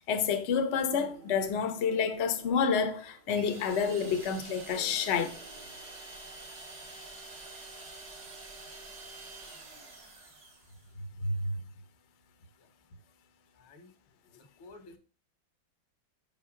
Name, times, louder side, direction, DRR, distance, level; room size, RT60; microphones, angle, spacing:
voice 1, 0.1-5.4 11.2-11.5, left 6 dB, 50° left, 0.8 m, -29 dB
sound 1, 0.9-6.6, right 5 dB, 70° right, 2.6 m, -53 dB
sound 2, 3.3-10.9, right 3 dB, 50° right, 2.0 m, -47 dB
voice 2, 13.6-13.9 14.6-15.0, left 2 dB, 85° left, 2.2 m, -51 dB
5.6 x 5.5 x 4.9 m
omnidirectional pair, 2.3 m